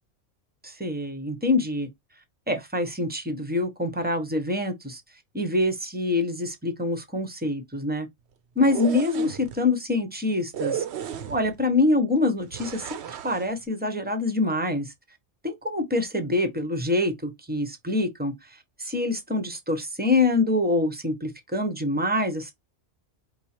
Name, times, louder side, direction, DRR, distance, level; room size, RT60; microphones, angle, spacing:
voice 1, 0.6-1.9 2.5-5.0 5.3-8.1 8.6-10.8 11.3-14.9 15.4-18.3 18.8-22.5, left 2 dB, 10° right, 0.8 m, -25 dB
sound 1, 8.6-9.6 10.5-11.6 12.5-13.5, right 9 dB, 70° right, 0.9 m, -33 dB
4.8 x 2.3 x 4.3 m
omnidirectional pair, 1.2 m